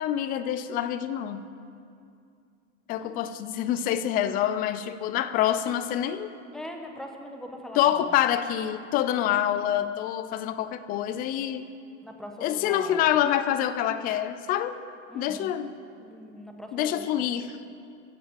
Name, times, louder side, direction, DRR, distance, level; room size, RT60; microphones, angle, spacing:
voice 1, 0.0-1.4 2.9-6.3 7.8-11.7 12.4-14.8 15.1-15.7 16.7-17.6, left 11 dB, 25° left, 12 dB, 0.4 m, -26 dB
voice 2, 6.5-8.2 12.0-13.1 15.1-15.5 16.0-17.2, equal, ahead, 3 dB, 1.1 m, -41 dB
15.0 x 7.2 x 7.4 m, 2.4 s
hypercardioid pair, 130°, 40 cm